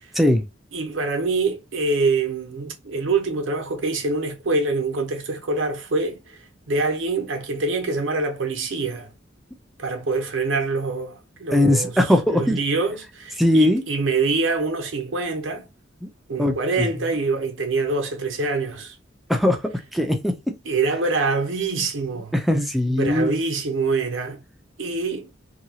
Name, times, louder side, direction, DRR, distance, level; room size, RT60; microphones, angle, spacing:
voice 1, 0.1-0.4 11.5-12.6 13.4-13.8 16.0-16.1 16.4-16.9 19.3-19.6 19.9-20.3 22.3-23.4, left 1 dB, ahead, 0.4 m, -19 dB
voice 2, 0.7-6.4 6.7-9.1 9.8-11.9 12.3-15.7 16.3-19.0 20.6-22.3 22.9-24.4 24.8-25.3, right 3 dB, 85° right, 0.8 m, -25 dB
2.8 x 2.3 x 2.7 m
head